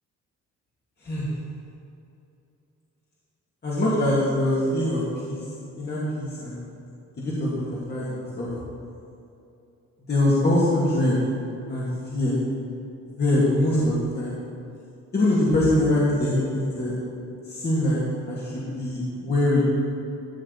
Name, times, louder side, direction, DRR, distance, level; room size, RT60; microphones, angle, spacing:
voice 1, 3.6-5.4 5.8-6.6 7.2-8.6 10.1-11.2 11.7-12.4 13.2-14.3 15.1-17.0 17.4-18.0 18.3-19.6, left 1 dB, 35° left, -7 dB, 2.2 m, -23 dB
13.5 x 6.3 x 4.0 m, 2.7 s
cardioid pair, 90°, 30 cm